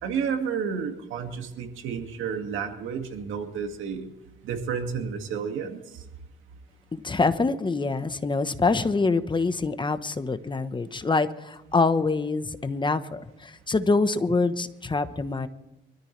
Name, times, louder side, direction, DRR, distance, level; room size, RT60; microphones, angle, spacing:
voice 1, 0.0-4.1 4.4-6.0, right 6 dB, 85° right, 5 dB, 2.3 m, -31 dB
voice 2, 6.9-15.5, left 3 dB, 25° left, 10 dB, 1.1 m, -25 dB
25.0 x 13.5 x 3.4 m, 0.91 s
cardioid pair, 90°, 20 cm